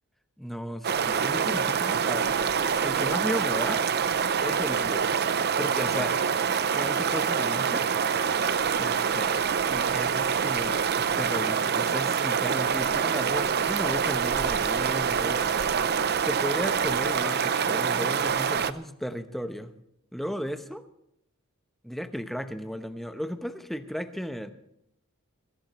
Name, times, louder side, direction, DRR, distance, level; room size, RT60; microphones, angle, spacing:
voice 1, 0.4-2.3 2.8-3.8 4.4-5.1 5.6-6.2 6.7-7.9 8.8-9.4 9.7-15.5 16.2-19.7 20.1-20.8 21.8-24.5, equal, ahead, 8 dB, 0.9 m, -35 dB
sound 1, 0.8-18.7, right 7 dB, 50° right, 0.6 m, -26 dB
22.5 x 16.5 x 3.1 m, 0.78 s
head